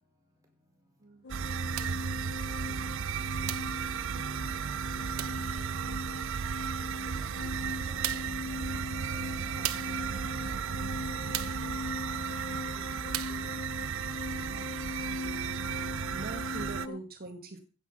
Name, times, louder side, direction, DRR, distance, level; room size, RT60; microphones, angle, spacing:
voice 1, 1.0-1.3 14.6-14.8 16.1-17.6, right 3 dB, 45° right, 1.5 m, -43 dB
sound 1, 1.2-17.0, left 2 dB, 55° left, 0.9 m, -40 dB
sound 2, 1.3-16.9, right 7 dB, 65° right, 0.5 m, -35 dB
sound 3, 1.8-2.1 3.5-3.8 5.2-5.5 7.2-7.3 8.0-8.4 9.6-10.0 11.3-11.7 13.1-13.5, right 12 dB, 85° right, 1.1 m, -36 dB
voice 2, 3.9-4.3, left 2 dB, 25° left, 1.4 m, -73 dB
voice 3, 6.4-8.0 9.1-10.1 12.5-13.5, right 1 dB, 15° right, 5.1 m, -57 dB
15.5 x 8.3 x 5.7 m
head